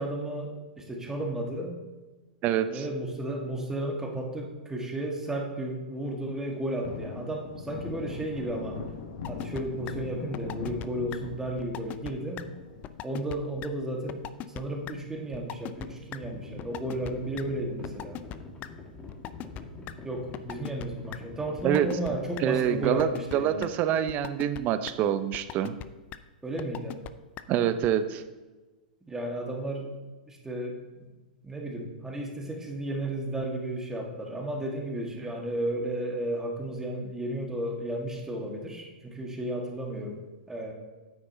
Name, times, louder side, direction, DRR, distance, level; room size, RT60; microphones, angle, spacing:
voice 1, 0.0-1.8 2.7-8.8 9.3-12.4 13.0-18.2 20.0-23.7 26.4-27.0 29.1-29.9 30.3-30.8 31.4-40.7, right 1 dB, 10° right, 0 dB, 1.4 m, -33 dB
voice 2, 2.4-2.8 21.6-21.9 22.4-25.7 27.5-28.2, right 10 dB, 35° right, 12 dB, 0.6 m, -26 dB
Thunder, 6.4-17.2 17.5-17.6 18.0-19.5 19.8-19.9 20.3-21.1 21.5-21.6 21.9-22.0 24.4-24.9, left 5 dB, 60° left, 1.0 m, -43 dB
sound 1, 9.2-9.6 9.9-10.0 10.3-10.9 11.1-11.2 11.6-12.1 12.4-12.5 12.8-13.4 13.6-13.7 14.1-14.6 14.9-15.0 15.3-15.9 16.1-16.2 16.6-17.1 17.4-17.5 17.8-18.7 19.1-19.9 20.3-20.9 21.1-21.2 21.6-22.1 22.4-22.5 22.8-23.3 23.6-23.7 24.1-24.6 24.9-25.0 25.3-25.8 26.1-26.2 26.6-27.1 27.4-27.5 27.8-27.9, left 13 dB, 35° left, 0.4 m, -38 dB
Livestock farm animals working animals, 15.3-24.0, left 3 dB, 20° left, 1.7 m, -47 dB
9.5 x 8.9 x 2.7 m, 1.2 s
hypercardioid pair, 110°, 5 cm